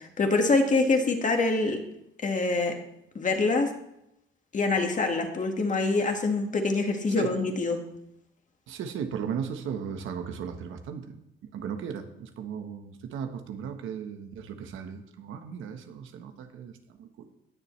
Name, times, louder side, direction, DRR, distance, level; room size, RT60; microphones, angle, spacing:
voice 1, 0.0-1.8 2.2-2.7 3.2-3.7 4.5-7.8, left 3 dB, 40° left, 4 dB, 1.8 m, -25 dB
voice 2, 8.7-11.2 11.5-17.3, right 7 dB, 85° right, 6 dB, 1.2 m, -36 dB
18.5 x 6.9 x 3.2 m, 0.82 s
cardioid pair, 90°, 20 cm